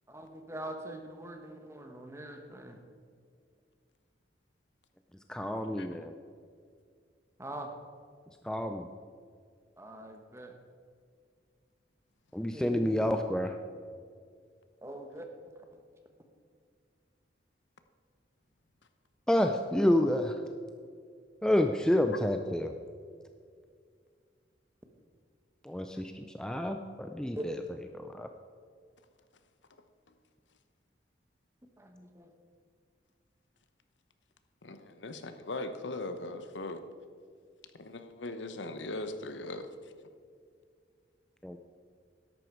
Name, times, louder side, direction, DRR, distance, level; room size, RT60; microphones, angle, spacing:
voice 1, 0.1-2.8 7.4-7.7 9.8-10.5 12.5-13.1 14.8-15.2 15.7-15.8 27.3-27.4 31.8-32.3, right 1 dB, 15° right, 4 dB, 1.2 m, -43 dB
voice 2, 5.3-6.1 8.4-8.9 12.3-13.5 19.3-20.4 21.4-22.7 25.6-27.5 27.9-28.3 41.4-41.6, left 1 dB, 5° left, 5 dB, 0.4 m, -29 dB
voice 3, 34.6-36.8 37.8-39.7, left 2 dB, 90° left, 9 dB, 1.0 m, -39 dB
13.0 x 11.0 x 4.6 m, 2.2 s
head